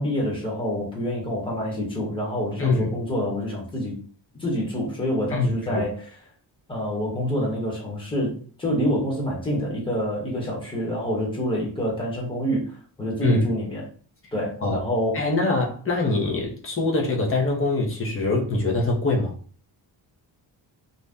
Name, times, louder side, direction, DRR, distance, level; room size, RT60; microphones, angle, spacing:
voice 1, 0.0-3.9 4.4-6.1 6.7-13.8 14.3-15.2, equal, 10° left, 0.9 m, -27 dB
voice 2, 2.6-3.0 4.3-4.4 5.3-5.8 13.2-13.5 14.6-14.8 15.1-19.4, left 2 dB, 30° left, 0.6 m, -23 dB
2.6 x 2.1 x 3.4 m
wide cardioid pair, 175°, 44 cm